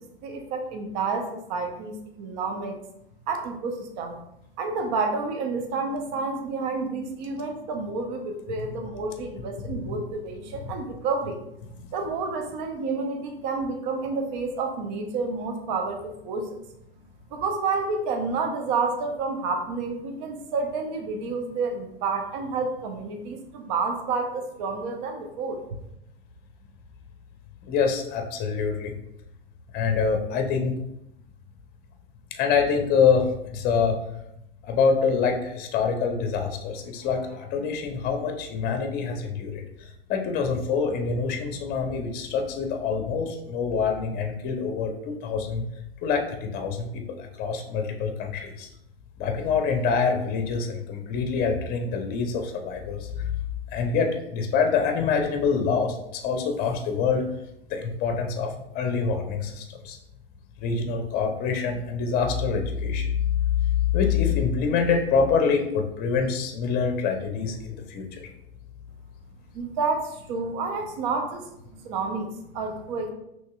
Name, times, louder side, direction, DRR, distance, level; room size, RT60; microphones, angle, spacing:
voice 1, 0.0-2.8 3.3-4.2 4.6-11.4 11.9-16.6 17.3-25.6 69.5-73.1, right 4 dB, 45° right, 4 dB, 0.7 m, -29 dB
voice 2, 27.6-28.9 29.7-30.7 32.3-34.0 34.6-45.6 46.0-48.7 49.2-53.3 53.7-57.2 57.7-60.0 60.6-68.3, left 5 dB, 30° left, 5 dB, 0.7 m, -25 dB
5.4 x 3.1 x 2.3 m, 0.80 s
figure-of-eight pair, 95°, 31 cm